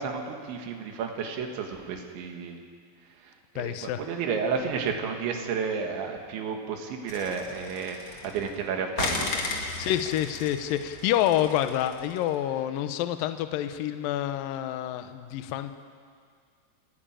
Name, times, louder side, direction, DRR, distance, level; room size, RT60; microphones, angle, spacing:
voice 1, 0.0-2.6 3.2-9.3, right 6 dB, 90° right, 3 dB, 4.1 m, -32 dB
voice 2, 3.6-4.0 9.8-15.8, left 12 dB, 80° left, 9 dB, 2.1 m, -28 dB
sound 1, 7.1-8.5 9.0-12.2, left 3 dB, 45° left, 2.3 m, -35 dB
30.0 x 10.5 x 8.9 m, 2.1 s
omnidirectional pair, 5.1 m